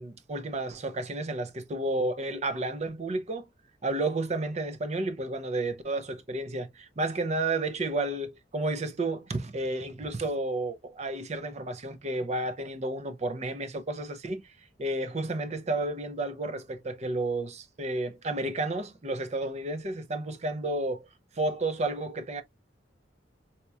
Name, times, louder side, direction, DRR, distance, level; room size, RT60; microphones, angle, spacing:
voice 1, 0.0-3.5 3.8-14.5 14.8-21.1 21.4-22.4, right 2 dB, 40° right, 0.6 m, -31 dB
4.1 x 2.9 x 2.2 m
head